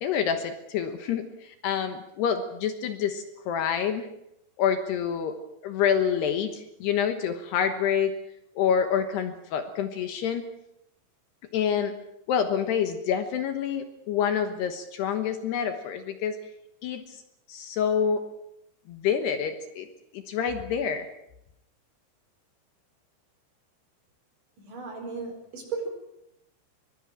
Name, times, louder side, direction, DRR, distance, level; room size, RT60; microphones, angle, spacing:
voice 1, 0.0-4.1 4.6-5.3 5.6-8.1 8.6-10.5 11.5-11.9 12.3-16.4 16.8-17.2 17.5-18.2 18.9-19.9 20.1-21.1, left 8 dB, 70° left, 7 dB, 3.1 m, -27 dB
voice 2, 24.6-25.9, right 4 dB, 45° right, 4 dB, 5.8 m, -35 dB
23.0 x 21.5 x 7.5 m, 0.83 s
omnidirectional pair, 5.4 m